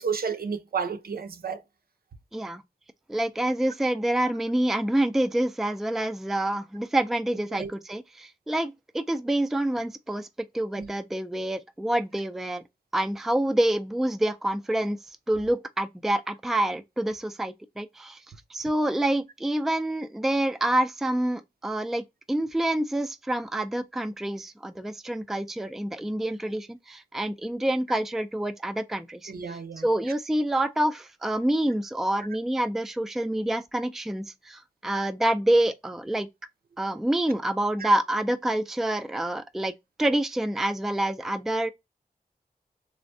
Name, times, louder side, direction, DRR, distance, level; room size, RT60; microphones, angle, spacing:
voice 1, 0.0-1.6 7.5-7.7 10.8-10.9 29.3-29.8 37.8-37.9, right 6 dB, 75° right, 0.5 m, -31 dB
voice 2, 2.3-2.6 3.1-10.3 10.5-12.6 12.9-15.0 15.3-18.2 18.5-36.3 36.8-39.7 40.0-41.7, right 1 dB, ahead, 0.3 m, -27 dB
3.3 x 2.0 x 2.6 m
wide cardioid pair, 60°, 16 cm